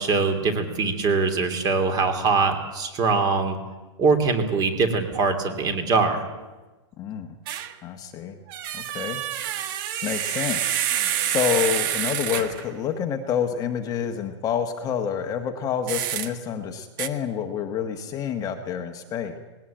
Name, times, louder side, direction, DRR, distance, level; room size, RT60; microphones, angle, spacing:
voice 1, 0.0-3.6 4.0-6.2, right 4 dB, 25° right, 7 dB, 3.0 m, -22 dB
voice 2, 7.0-7.3 7.8-8.4 8.7-9.6 10.0-19.4, left 8 dB, 25° left, 5 dB, 1.4 m, -28 dB
sound 1, 7.5-7.7 8.5-12.7 15.9-16.3 17.0-17.1, right 11 dB, 45° right, 1.5 m, -27 dB
19.5 x 18.0 x 8.9 m, 1.2 s
hypercardioid pair, 150°, 15 cm